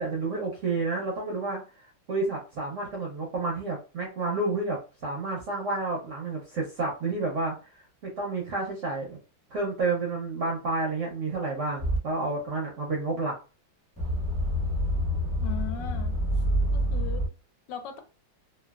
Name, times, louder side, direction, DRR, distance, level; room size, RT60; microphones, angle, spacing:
voice 1, 0.0-1.6 2.1-7.5 8.0-9.2 9.5-13.3, right 3 dB, 65° right, -1 dB, 0.8 m, -30 dB
sound 1, 11.8-12.0 14.0-17.3, equal, 5° left, 0.8 m, -27 dB
voice 2, 15.4-16.2 16.7-17.3 17.7-18.0, left 9 dB, 75° left, 7 dB, 1.2 m, -38 dB
3.1 x 2.3 x 2.3 m, 0.33 s
omnidirectional pair, 2.0 m